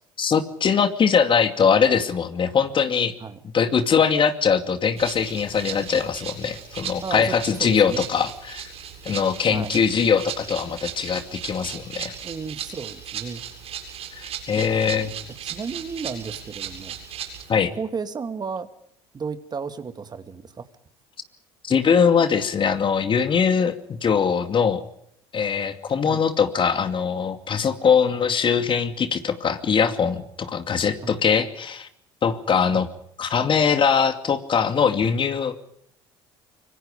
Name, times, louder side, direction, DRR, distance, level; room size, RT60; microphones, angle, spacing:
voice 1, 0.2-3.1 3.5-8.6 9.0-12.1 14.1-15.1 17.5-17.7 21.6-24.8 25.3-31.9 32.2-32.9 33.2-35.5, left 6 dB, 40° left, 9 dB, 2.5 m, -21 dB
Rattle (instrument), 5.0-17.5, right 8 dB, 50° right, 7.9 m, -37 dB
voice 2, 7.0-8.1 9.5-9.8 12.2-13.4 15.0-15.1 15.4-17.0 17.7-18.7 19.1-20.7 26.1-26.2 31.0-31.2 32.7-32.8, right 5 dB, 30° right, 10 dB, 2.3 m, -33 dB
25.5 x 24.5 x 5.1 m, 0.73 s
hypercardioid pair, 65°, 13 cm